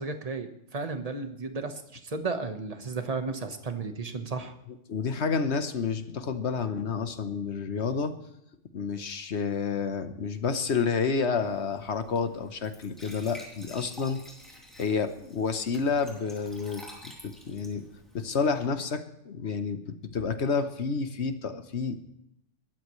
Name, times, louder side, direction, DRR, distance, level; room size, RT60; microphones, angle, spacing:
voice 1, 0.0-4.5, right 4 dB, 30° right, 7 dB, 1.3 m, -34 dB
voice 2, 4.9-8.1 8.7-14.2 14.8-17.9 18.1-22.1, left 5 dB, 65° left, 10 dB, 1.3 m, -30 dB
Glass / Trickle dribble / Fill (with liquid), 11.3-18.7, equal, ahead, 3.3 m, -50 dB
20.5 x 13.5 x 3.2 m, 0.79 s
omnidirectional pair, 1.3 m